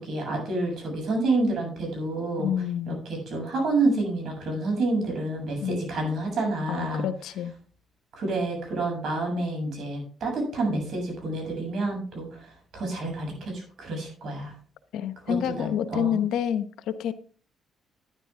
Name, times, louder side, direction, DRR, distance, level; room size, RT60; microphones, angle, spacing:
voice 1, 0.0-2.5 2.9-7.1 8.2-12.4 12.7-14.5 15.3-16.2, right 2 dB, 65° right, 1 dB, 7.5 m, -28 dB
voice 2, 2.4-3.0 5.6-5.8 6.7-7.5 14.9-17.1, left 9 dB, 85° left, 11 dB, 0.9 m, -28 dB
12.0 x 10.0 x 3.7 m, 0.41 s
cardioid pair, 90°, 0 cm